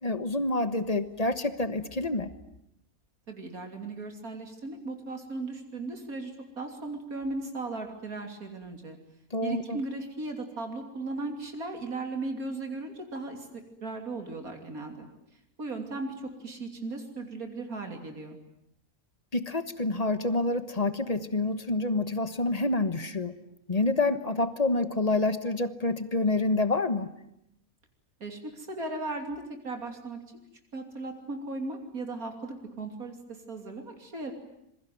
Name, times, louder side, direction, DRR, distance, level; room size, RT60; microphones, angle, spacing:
voice 1, 0.0-2.3 9.3-9.8 19.3-23.3 23.7-27.1, left 2 dB, 30° left, 11 dB, 1.3 m, -27 dB
voice 2, 3.3-9.0 9.4-13.5 13.8-15.0 15.6-18.4 28.2-30.2 30.7-34.3, right 2 dB, 75° right, 4 dB, 3.5 m, -37 dB
26.5 x 23.0 x 9.4 m, 0.78 s
omnidirectional pair, 1.5 m